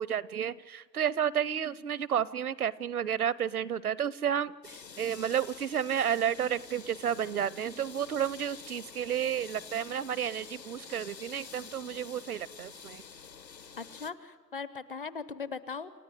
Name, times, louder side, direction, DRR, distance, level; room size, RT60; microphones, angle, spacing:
voice 1, 0.0-13.0, right 9 dB, 60° right, 21 dB, 0.7 m, -31 dB
sound 1, 4.6-14.1, left 6 dB, 75° left, 1.5 m, -48 dB
voice 2, 13.8-16.0, left 5 dB, 35° left, 16 dB, 0.6 m, -39 dB
28.5 x 14.0 x 9.8 m, 1.4 s
figure-of-eight pair, 140°, 50 cm